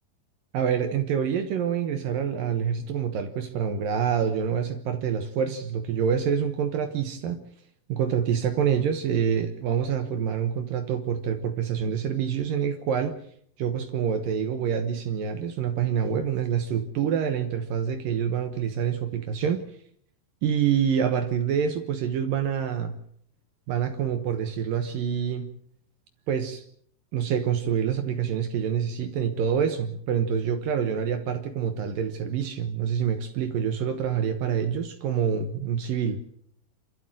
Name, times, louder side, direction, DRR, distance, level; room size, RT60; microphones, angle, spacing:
voice 1, 0.5-7.4 7.9-13.2 13.6-19.7 20.4-22.9 23.7-25.5 26.3-26.6 27.1-36.2, right 8 dB, 75° right, 2.1 m, -26 dB
27.5 x 13.0 x 7.7 m
omnidirectional pair, 5.6 m